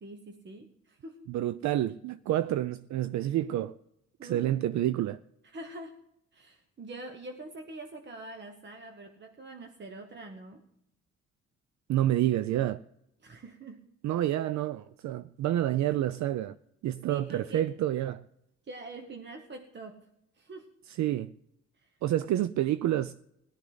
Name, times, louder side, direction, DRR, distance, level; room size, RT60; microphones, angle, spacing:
voice 1, 0.0-1.3 4.2-4.5 5.4-6.0 6.3-10.6 13.2-13.9 17.1-17.7 18.6-20.1 20.3-20.7 21.7-22.0, right 2 dB, 35° right, 1.3 m, -45 dB
voice 2, 1.3-3.7 4.2-5.2 11.9-12.8 14.0-16.5 16.8-18.2 21.0-21.3 22.0-23.1, right 13 dB, 70° right, 0.5 m, -28 dB
17.0 x 12.5 x 4.0 m
cardioid pair, 90°, 30 cm